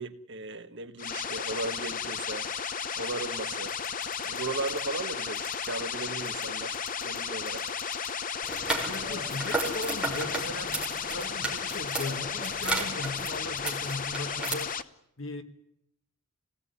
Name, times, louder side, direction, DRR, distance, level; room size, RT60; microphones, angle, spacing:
voice 1, 0.0-2.5 2.9-3.8 4.2-6.8 7.0-7.7, right 3 dB, 60° right, 1.6 m, -36 dB
sound 1, 1.0-14.8, left 7 dB, 40° left, 1.0 m, -34 dB
sound 2, 3.7-4.4 4.7-4.8 5.4-5.7 6.3-6.5 6.7-7.2 7.5-8.1 8.5-8.8 9.6-9.7 10.1-10.4 10.7-11.0, left 7 dB, 85° left, 6.6 m, -50 dB
sound 3, 8.4-14.5, right 2 dB, 5° right, 5.6 m, -34 dB
voice 2, 8.8-10.8 11.1-14.8 15.2-15.4, left 2 dB, 70° left, 2.3 m, -37 dB
27.0 x 18.0 x 9.9 m
head